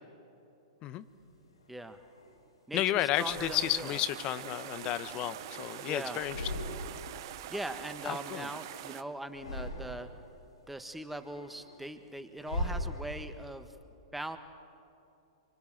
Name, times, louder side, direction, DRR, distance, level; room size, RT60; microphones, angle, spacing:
sound 1, 1.2-2.4 3.1-4.0 4.5-5.8 6.1-7.2 7.4-8.8 9.2-10.3 10.7-13.5, left 1 dB, 90° left, 4.8 m, -41 dB
voice 1, 1.7-2.0 2.7-4.0 5.8-6.2 7.5-10.1 10.7-13.8 14.1-14.4, right 1 dB, 5° right, 8 dB, 1.4 m, -41 dB
voice 2, 2.7-6.5 8.0-8.5, left 13 dB, 35° left, 14 dB, 0.9 m, -32 dB
sound 2, 3.1-9.0, right 13 dB, 55° right, 0.9 m, -44 dB
28.0 x 24.5 x 7.5 m, 2.7 s
figure-of-eight pair, 105°, 3 cm